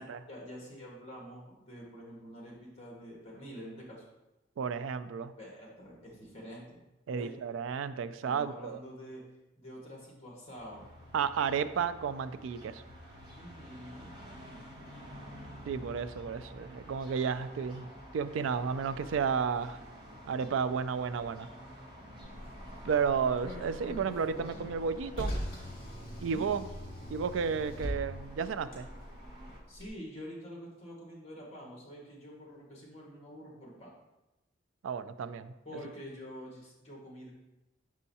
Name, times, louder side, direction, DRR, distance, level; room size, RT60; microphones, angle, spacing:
voice 1, 0.3-4.0 5.4-7.3 8.2-9.2 9.6-10.9 13.3-14.1 26.2-26.4 29.7-33.9 35.6-37.3, equal, 30° left, -3 dB, 1.6 m, -47 dB
voice 2, 4.6-5.3 7.1-8.8 11.1-12.8 15.7-17.9 18.1-19.8 20.3-21.5 22.8-25.3 26.2-26.7 27.1-28.9 34.8-35.5, right 6 dB, 75° right, 13 dB, 0.3 m, -32 dB
sound 1, 10.5-29.6, equal, 25° right, 1.0 m, -50 dB
Car, 22.2-29.9, equal, 50° left, 2.0 m, -42 dB
6.2 x 5.5 x 2.8 m, 0.99 s
head